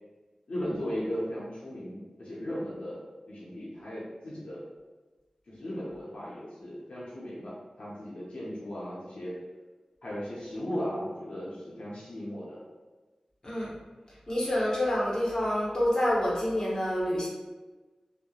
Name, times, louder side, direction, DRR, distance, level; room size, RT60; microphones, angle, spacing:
voice 1, 0.5-4.6 5.5-9.4 10.0-12.6, equal, 80° left, -8 dB, 0.6 m, -37 dB
voice 2, 14.3-17.3, left 1 dB, 35° left, -6 dB, 0.9 m, -27 dB
2.7 x 2.1 x 2.3 m, 1.3 s
cardioid pair, 50°, 2 cm